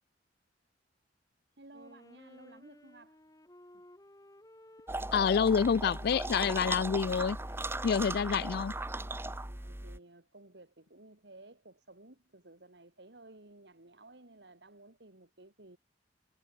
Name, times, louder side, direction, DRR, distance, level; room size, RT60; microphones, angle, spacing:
voice 1, 1.6-3.2 3.7-3.8 9.4-15.8, right 2 dB, 65° right, 2.5 m, -55 dB
Wind instrument woodwind instrument, 1.7-9.4, left 1 dB, 20° left, 1.9 m, -57 dB
sound 1, 4.9-10.0, right 2 dB, 15° right, 1.3 m, -38 dB
voice 2, 5.1-7.4 7.8-8.7, left 6 dB, 60° left, 0.4 m, -27 dB
head